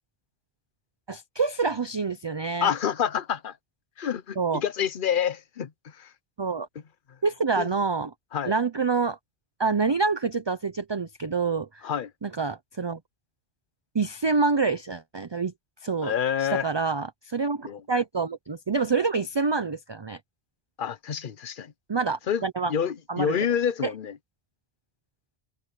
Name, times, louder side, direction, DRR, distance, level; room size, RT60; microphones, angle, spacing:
voice 1, 1.1-2.7 4.4-4.6 6.4-6.7 7.2-8.1 8.4-9.2 9.6-11.9 12.2-13.0 13.9-15.5 15.8-16.1 16.4-20.2 21.9-22.7 23.1-23.5 23.8-23.9, right 4 dB, 30° right, 0.6 m, -27 dB
voice 2, 2.6-3.5 4.0-5.7 6.0-6.1 7.6-7.7 8.3-8.5 11.8-12.1 16.0-16.7 17.6-17.8 20.8-21.7 22.3-22.4 22.7-24.2, left 8 dB, 55° left, 1.0 m, -27 dB
omnidirectional pair, 1.1 m